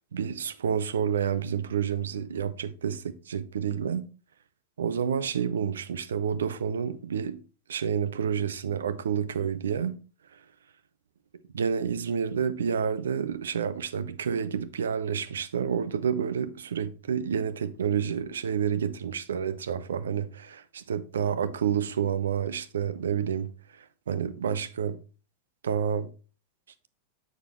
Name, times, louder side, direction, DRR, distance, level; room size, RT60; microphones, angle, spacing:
voice 1, 0.0-4.1 4.8-7.4 7.7-10.0 10.3-10.4 11.5-25.0 25.6-26.1, right 7 dB, 65° right, 0.6 m, -29 dB
7.1 x 6.4 x 3.0 m
figure-of-eight pair, 90°, 0 cm